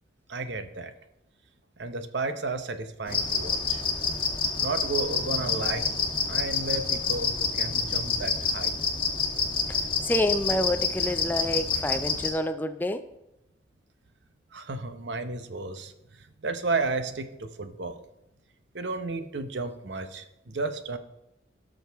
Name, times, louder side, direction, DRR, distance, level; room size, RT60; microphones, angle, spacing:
voice 1, 0.3-0.9 1.8-3.8 4.6-5.9 6.3-8.8 14.5-15.9 16.2-18.0 18.7-21.0, right 3 dB, 80° right, 9 dB, 0.9 m, -33 dB
sound 1, 3.1-12.3, left 4 dB, 30° left, 1.3 m, -28 dB
voice 2, 9.7-13.0, left 1 dB, 10° left, 10 dB, 0.4 m, -28 dB
17.0 x 6.4 x 3.5 m, 0.92 s
head